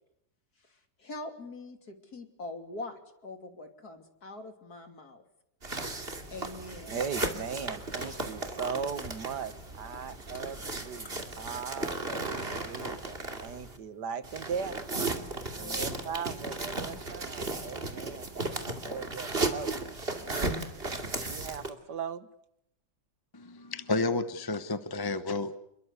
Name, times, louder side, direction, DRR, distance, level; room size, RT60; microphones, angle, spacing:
voice 1, 1.0-5.2 6.3-7.0 15.6-15.9, left 2 dB, 65° left, 6 dB, 3.5 m, -43 dB
sound 1, 5.6-13.8 14.2-21.7, right 2 dB, 35° right, 2.8 m, -35 dB
voice 2, 6.9-14.8 15.5-19.7 20.2-20.7 21.2-22.3, right 6 dB, 75° right, 13 dB, 1.9 m, -38 dB
sound 2, 7.6-13.2, left 3 dB, 35° left, 2.7 m, -51 dB
voice 3, 23.3-25.6, left 3 dB, 20° left, 11 dB, 0.8 m, -31 dB
28.5 x 22.0 x 8.3 m, 0.79 s
omnidirectional pair, 1.8 m